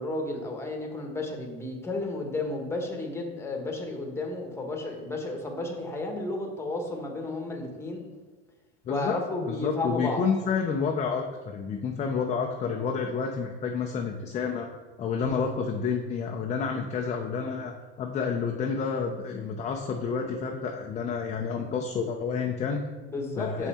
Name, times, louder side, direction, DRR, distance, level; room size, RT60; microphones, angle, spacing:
voice 1, 0.0-8.0 8.9-10.2 11.9-12.0 21.5-21.7 23.0-23.7, left 2 dB, 10° left, 1 dB, 1.1 m, -33 dB
voice 2, 8.9-14.7 15.0-17.7 18.0-22.8 23.4-23.7, left 5 dB, 25° left, 2 dB, 0.5 m, -29 dB
6.1 x 5.4 x 4.2 m, 1.3 s
supercardioid pair, 140°, 29 cm